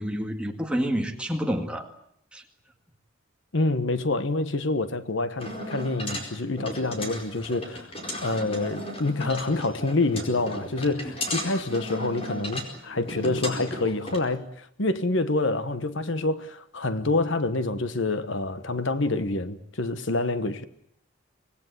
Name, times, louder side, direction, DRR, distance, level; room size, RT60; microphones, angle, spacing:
voice 1, 0.0-1.9 2.3-2.4, equal, 5° right, 2.0 m, -28 dB
voice 2, 3.5-7.9 8.2-20.6, left 2 dB, 65° left, 1.3 m, -27 dB
sound 1, 5.4-14.2, left 1 dB, 25° left, 4.5 m, -35 dB
25.5 x 19.5 x 9.4 m
head